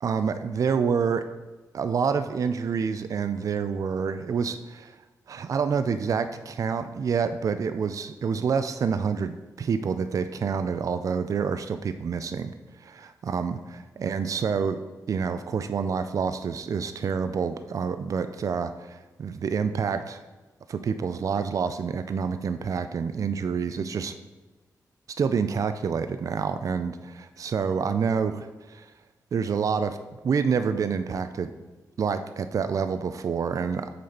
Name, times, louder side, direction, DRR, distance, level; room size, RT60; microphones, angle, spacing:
voice 1, 0.0-1.2 1.7-5.0 5.3-14.8 15.1-20.2 20.7-24.1 25.2-28.9 29.3-30.0 30.2-31.5 32.0-33.9, right 6 dB, 55° right, 10 dB, 0.3 m, -27 dB
6.3 x 4.1 x 4.3 m, 1.2 s
wide cardioid pair, 110°, 7 cm